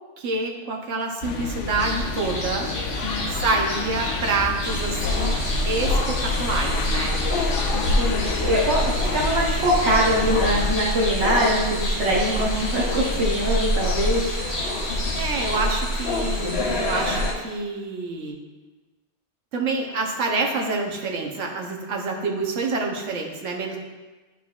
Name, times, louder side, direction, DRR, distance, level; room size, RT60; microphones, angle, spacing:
voice 1, 0.2-2.7 3.3-5.4 5.6-7.2 15.1-18.4 19.5-23.8, right 3 dB, 85° right, 1 dB, 1.2 m, -27 dB
sound 1, 1.2-10.7, left 4 dB, 85° left, 1.0 m, -30 dB
sound 2, 1.8-15.6, left 1 dB, 35° left, 0.9 m, -34 dB
voice 2, 3.0-3.4 6.9-7.0 7.7-8.8 9.1-14.4, equal, 65° right, -4 dB, 1.2 m, -23 dB
sound 3, 4.6-17.3, left 1 dB, 60° left, 1.1 m, -26 dB
11.0 x 4.5 x 2.4 m, 1.2 s
omnidirectional pair, 1.2 m